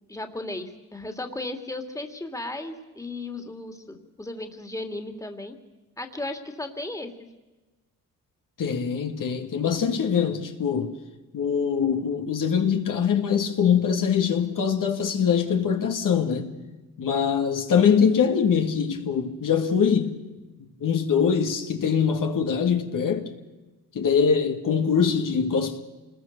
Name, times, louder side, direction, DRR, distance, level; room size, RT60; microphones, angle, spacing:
voice 1, 0.1-5.6 6.0-7.3, left 2 dB, 10° left, 2.7 m, -35 dB
voice 2, 8.6-10.9 11.3-16.5 17.0-20.2 20.6-23.3 23.9-25.8, left 7 dB, 60° left, 2.3 m, -23 dB
27.0 x 20.5 x 6.7 m
cardioid pair, 80°, 37 cm